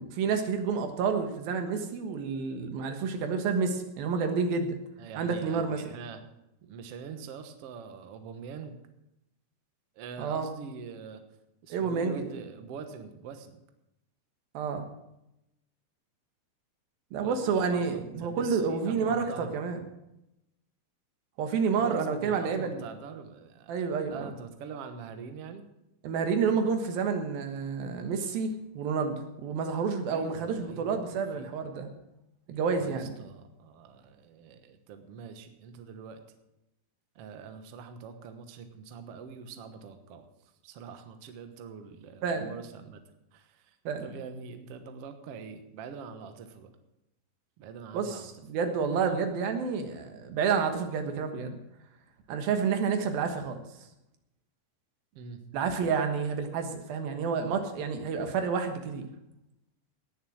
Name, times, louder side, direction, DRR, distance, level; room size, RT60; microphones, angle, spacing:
voice 1, 0.0-4.8 5.2-5.8 10.2-10.5 11.7-12.3 14.5-14.9 17.1-19.8 21.4-22.8 23.7-24.3 26.0-31.9 32.5-33.1 42.2-42.6 43.9-44.1 47.9-51.6 52.3-53.6 55.5-59.1, right 5 dB, 85° right, 6 dB, 3.2 m, -29 dB
voice 2, 5.0-6.2 6.6-8.8 10.0-11.2 11.6-13.6 17.2-19.6 21.8-23.8 24.1-25.7 30.1-31.5 32.8-36.2 37.2-40.3 40.6-43.0 43.3-46.7 47.6-48.3 55.1-55.4, right 6 dB, 60° right, 7 dB, 1.7 m, -44 dB
18.5 x 7.2 x 6.3 m, 0.87 s
omnidirectional pair, 4.1 m